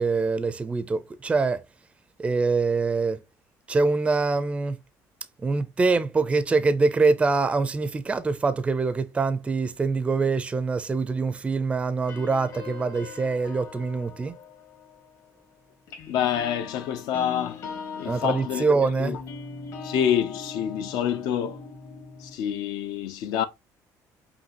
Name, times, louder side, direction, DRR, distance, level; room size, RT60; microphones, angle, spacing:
voice 1, 0.0-1.6 2.2-3.2 3.7-4.8 5.4-14.3 18.0-19.2, right 4 dB, 15° right, 0.4 m, -24 dB
sound 1, 12.0-15.4 15.9-22.3, left 5 dB, 60° left, 1.8 m, -40 dB
voice 2, 16.1-17.6 18.0-18.6 19.0-19.2 19.8-21.6 22.2-23.5, left 9 dB, 80° left, 0.7 m, -27 dB
5.3 x 2.7 x 2.8 m
cardioid pair, 120°, 7 cm